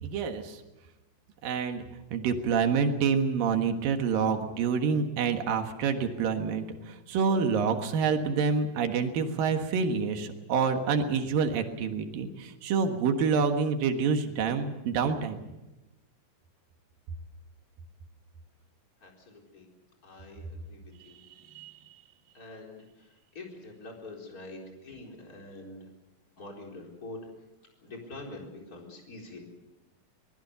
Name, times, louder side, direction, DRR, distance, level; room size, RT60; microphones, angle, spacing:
voice 1, 0.0-0.6 1.4-1.8 2.1-15.4 21.4-21.7, right 5 dB, 85° right, 6 dB, 3.3 m, -27 dB
voice 2, 19.0-19.7 20.0-21.2 22.3-22.8 23.3-25.8 26.4-27.2 27.8-29.4, left 2 dB, 25° left, 1 dB, 4.5 m, -45 dB
24.0 x 19.5 x 6.9 m, 1.0 s
omnidirectional pair, 3.9 m